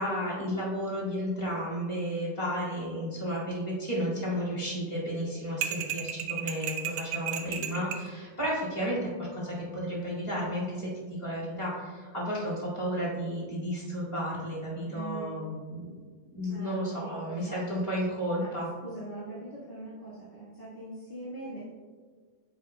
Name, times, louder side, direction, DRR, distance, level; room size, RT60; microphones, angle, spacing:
voice 1, 0.0-15.9 16.3-18.7, equal, 15° left, -7 dB, 1.8 m, -32 dB
sound 1, 5.6-8.1, right 9 dB, 80° right, 1.4 m, -33 dB
voice 2, 14.8-15.5 16.4-17.6 18.4-18.5 18.8-21.7, right 2 dB, 30° left, -11 dB, 1.0 m, -42 dB
8.5 x 8.0 x 2.3 m, 1.5 s
omnidirectional pair, 3.5 m